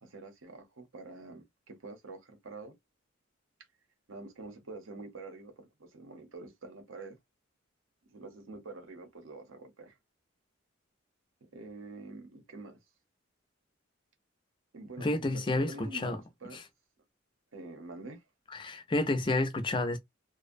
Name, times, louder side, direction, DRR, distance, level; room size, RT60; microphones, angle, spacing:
voice 1, 0.0-2.7 4.1-7.2 8.1-10.0 11.5-12.8 14.7-16.6 17.5-18.2, right 3 dB, 75° right, 0.8 m, -46 dB
voice 2, 15.0-16.2 16.5-16.6 18.5-20.0, left 2 dB, 25° left, 0.4 m, -30 dB
2.5 x 2.1 x 2.4 m
head